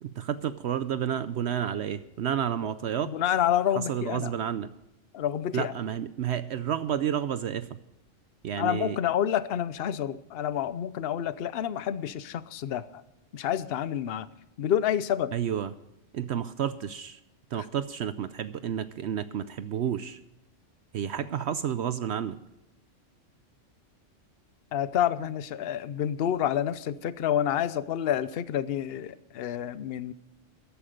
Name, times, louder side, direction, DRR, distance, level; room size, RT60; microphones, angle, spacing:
voice 1, 0.0-3.1 3.7-4.7 5.5-7.7 8.4-9.0 15.3-15.7 16.1-17.2 17.5-20.2 20.9-22.4, right 9 dB, 65° right, 13 dB, 0.9 m, -30 dB
voice 2, 3.1-4.3 5.1-5.7 8.6-12.8 13.3-14.3 14.6-15.3 24.7-30.1, left 10 dB, 60° left, 15 dB, 0.8 m, -28 dB
14.5 x 11.5 x 5.1 m, 0.89 s
omnidirectional pair, 1.3 m